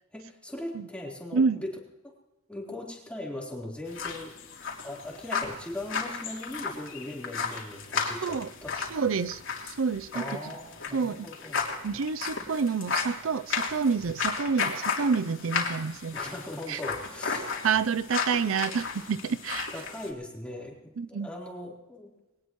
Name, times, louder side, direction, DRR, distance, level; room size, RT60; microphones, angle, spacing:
voice 1, 0.1-1.7 2.0-2.1 2.5-4.3 4.8-8.7 10.1-11.6 16.1-17.6 19.7-22.1, left 1 dB, 5° left, -3 dB, 3.9 m, -39 dB
sound 1, 3.9-20.1, left 5 dB, 70° left, 3.4 m, -34 dB
voice 2, 8.9-10.4 10.9-11.3 11.8-16.3 16.7-16.8 17.6-19.7 21.0-21.3, right 5 dB, 80° right, 14 dB, 0.5 m, -28 dB
22.0 x 18.5 x 3.1 m, 1.0 s
head